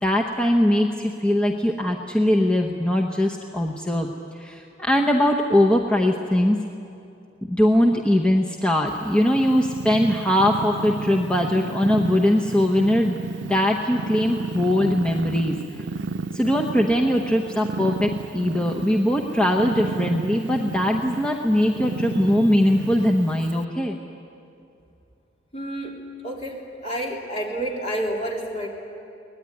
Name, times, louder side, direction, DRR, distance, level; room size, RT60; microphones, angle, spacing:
voice 1, 0.0-4.1 4.4-6.6 7.5-15.6 16.3-24.0, left 1 dB, 5° left, 0 dB, 1.0 m, -21 dB
Purr, 8.9-23.6, right 3 dB, 85° right, 0.6 m, -32 dB
voice 2, 25.5-26.0 26.2-28.7, right 1 dB, 35° left, -2 dB, 3.6 m, -29 dB
24.0 x 19.0 x 9.8 m, 2.6 s
head